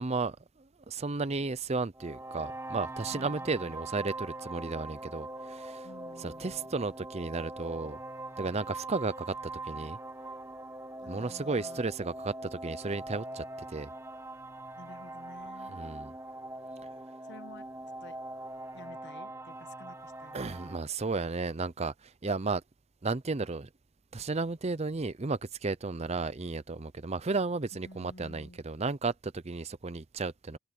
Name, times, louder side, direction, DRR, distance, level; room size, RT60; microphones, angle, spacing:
voice 1, 0.0-5.9 6.2-8.0 8.4-9.4 9.6-10.0 11.1-13.9 15.7-16.1 20.3-22.6 23.0-23.7 24.1-30.6, right 3 dB, 30° right, 0.6 m, -34 dB
sound 1, 1.9-20.8, right 2 dB, 10° right, 1.7 m, -42 dB
voice 2, 3.1-3.9 5.8-6.7 11.0-11.8 14.7-15.8 17.3-18.2 18.7-20.5 27.8-28.6, left 1 dB, 50° left, 1.2 m, -52 dB
head